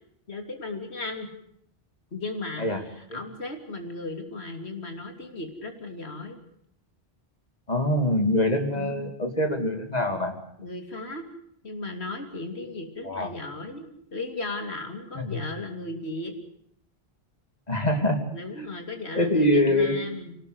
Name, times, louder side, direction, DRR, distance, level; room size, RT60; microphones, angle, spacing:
voice 1, 0.3-1.3 2.1-6.4 8.7-9.1 10.6-11.2 11.6-16.3 18.3-20.4, left 2 dB, 90° left, 5 dB, 3.4 m, -36 dB
voice 2, 7.7-10.3 13.0-13.3 15.1-15.4 17.7-18.2 19.1-20.0, left 1 dB, 40° left, 5 dB, 3.0 m, -24 dB
24.5 x 18.5 x 8.0 m, 0.69 s
omnidirectional pair, 1.1 m